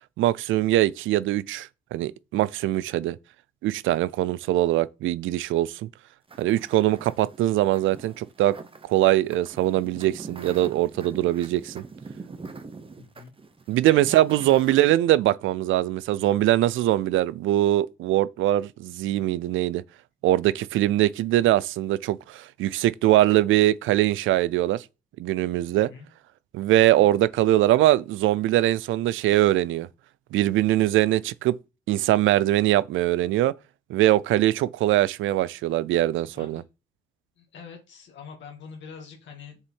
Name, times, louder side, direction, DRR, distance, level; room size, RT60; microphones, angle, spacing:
voice 1, 0.2-3.2 3.6-5.9 6.4-8.6 8.8-11.8 13.7-19.8 20.2-24.8 25.2-25.9 26.5-29.9 30.3-31.6 31.9-33.5 33.9-36.6, right 14 dB, 80° right, 0.5 m, -22 dB
sound 1, 6.3-14.9, right 4 dB, 25° right, 1.1 m, -44 dB
voice 2, 13.0-13.3 13.9-14.3 25.8-26.1 26.8-27.1 36.4-36.7 37.4-39.6, left 6 dB, 70° left, 2.1 m, -44 dB
6.8 x 6.7 x 4.6 m
cardioid pair, 90°, 20 cm